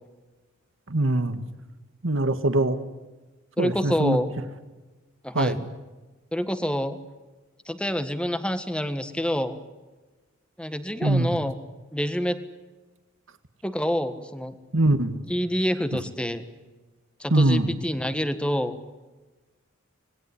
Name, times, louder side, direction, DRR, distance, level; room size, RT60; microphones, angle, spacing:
voice 1, 0.9-1.4 2.0-2.8 3.6-4.2 5.3-5.6 11.0-11.3 14.7-15.2 17.3-17.7, right 2 dB, 75° right, 10 dB, 1.8 m, -22 dB
voice 2, 3.6-4.3 5.2-5.6 6.3-7.0 7.7-9.6 10.6-11.6 11.9-12.4 13.6-14.5 15.3-16.4 17.2-18.8, equal, 5° left, 10 dB, 1.6 m, -27 dB
26.5 x 20.0 x 9.9 m, 1.2 s
head